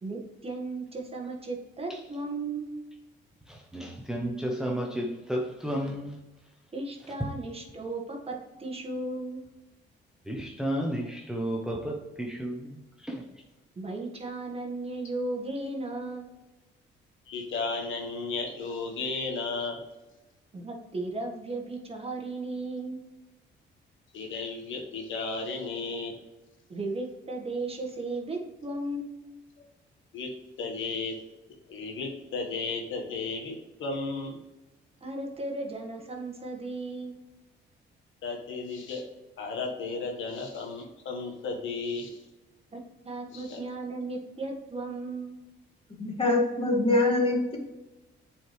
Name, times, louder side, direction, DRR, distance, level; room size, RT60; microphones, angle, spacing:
voice 1, 0.0-2.7 6.7-9.4 13.8-16.3 20.5-23.0 26.7-29.1 35.0-37.2 42.7-42.8 43.0-45.4, right 2 dB, 30° right, 0 dB, 1.6 m, -35 dB
voice 2, 3.4-6.2 7.0-7.3 10.2-13.4, equal, 5° right, 0 dB, 0.9 m, -33 dB
voice 3, 17.3-19.8 24.1-26.1 30.1-30.3 30.6-31.2 31.7-34.4 38.2-39.0 39.4-42.2 43.3-43.6, left 3 dB, 75° left, 2 dB, 1.5 m, -34 dB
voice 4, 46.0-47.6, left 2 dB, 25° left, 0 dB, 2.1 m, -24 dB
7.7 x 4.7 x 3.2 m, 1.1 s
cardioid pair, 90°, 20 cm